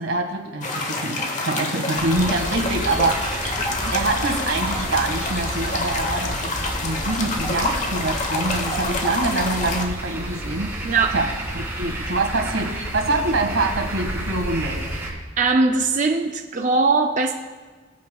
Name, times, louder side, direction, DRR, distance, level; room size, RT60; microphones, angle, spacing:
voice 1, 0.0-3.4 3.9-10.7 11.1-11.3 11.5-14.8, right 2 dB, 90° right, 3 dB, 1.8 m, -25 dB
sound 1, 0.6-9.9, left 2 dB, 35° left, 1.1 m, -27 dB
sound 2, 2.0-15.1, right 1 dB, 15° right, 2.0 m, -31 dB
voice 2, 10.8-11.2 15.4-17.3, right 3 dB, 40° right, 3 dB, 0.5 m, -20 dB
22.5 x 8.2 x 2.3 m, 1.4 s
head